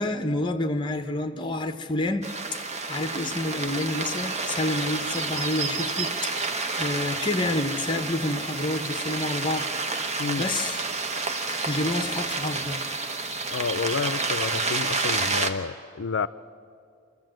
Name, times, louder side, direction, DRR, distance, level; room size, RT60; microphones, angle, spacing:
voice 1, 0.0-2.6 2.9-6.3 6.7-9.6 10.4-10.8 11.7-12.8, left 2 dB, 25° left, 7 dB, 1.0 m, -28 dB
sound 1, 2.2-15.5, right 3 dB, 35° right, 1.1 m, -29 dB
voice 2, 13.5-16.3, left 5 dB, 65° left, 15 dB, 0.5 m, -30 dB
26.5 x 14.0 x 7.7 m, 2.4 s
head